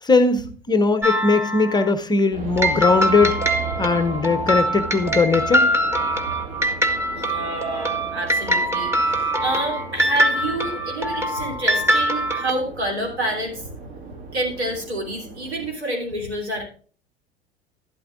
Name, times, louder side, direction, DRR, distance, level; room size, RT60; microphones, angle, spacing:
voice 1, 0.0-3.4 3.8-5.7, left 4 dB, 15° left, 11 dB, 0.6 m, -19 dB
sound 1, 1.0-1.9 2.6-12.5, right 1 dB, 10° right, 1.1 m, -23 dB
sound 2, 2.3-15.7, right 4 dB, 55° right, 2.0 m, -36 dB
voice 2, 7.1-13.9 14.3-16.6, right 1 dB, 75° right, -1 dB, 3.4 m, -28 dB
12.0 x 12.0 x 2.5 m, 0.43 s
figure-of-eight pair, 80°, 33 cm